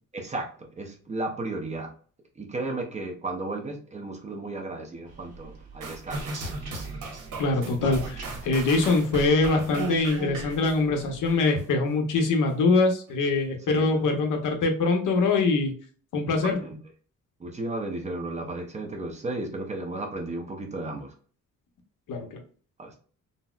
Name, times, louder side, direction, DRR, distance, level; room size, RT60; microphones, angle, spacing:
voice 1, 0.1-1.9 2.4-6.4 13.7-14.0 16.3-16.8 17.4-21.1 22.8-23.0, right 2 dB, 20° right, 2 dB, 0.6 m, -34 dB
sound 1, 5.1-11.4, right 2 dB, 50° right, 1.2 m, -38 dB
sound 2, 5.8-11.6 12.2-12.3, right 3 dB, 80° right, 1.0 m, -39 dB
voice 2, 7.4-15.7 16.1-16.6 22.1-22.4, left 3 dB, 75° left, 4 dB, 0.8 m, -23 dB
4.0 x 2.0 x 2.3 m, 0.43 s
cardioid pair, 155°, 32 cm